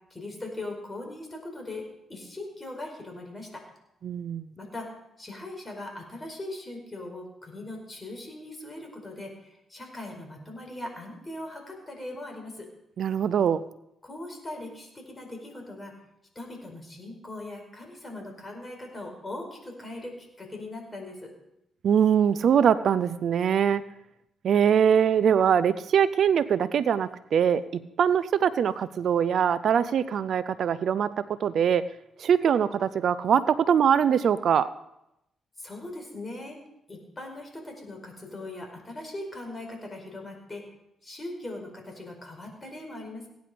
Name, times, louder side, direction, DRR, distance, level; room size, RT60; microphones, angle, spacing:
voice 1, 0.1-3.6 4.6-4.9 5.2-12.7 14.0-15.9 16.3-21.3 35.6-36.6 36.9-40.6 41.0-43.3, left 2 dB, 25° left, 2 dB, 5.0 m, -40 dB
voice 2, 4.0-4.5 13.0-13.6 21.8-23.8 24.4-31.1 31.4-31.8 32.2-34.7, right 8 dB, 65° right, 15 dB, 0.5 m, -23 dB
17.5 x 10.0 x 5.2 m, 0.84 s
cardioid pair, 75°, 0 cm